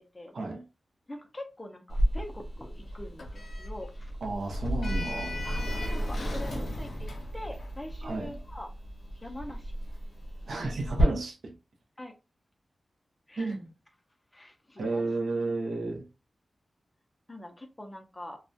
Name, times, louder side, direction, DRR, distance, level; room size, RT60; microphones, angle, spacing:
voice 1, 0.3-0.6 4.2-5.4 8.0-8.4 10.5-11.5 13.4-13.7 14.8-16.1, right 3 dB, 75° right, 0.5 m, -32 dB
voice 2, 1.1-4.1 5.4-8.7 9.2-9.9 12.0-12.2 13.3-13.6 14.3-15.1 17.3-18.4, left 1 dB, 15° left, 0.4 m, -43 dB
Sliding door, 1.9-11.0, equal, 60° left, 0.8 m, -33 dB
2.2 x 2.1 x 2.6 m
wide cardioid pair, 160°, 0 cm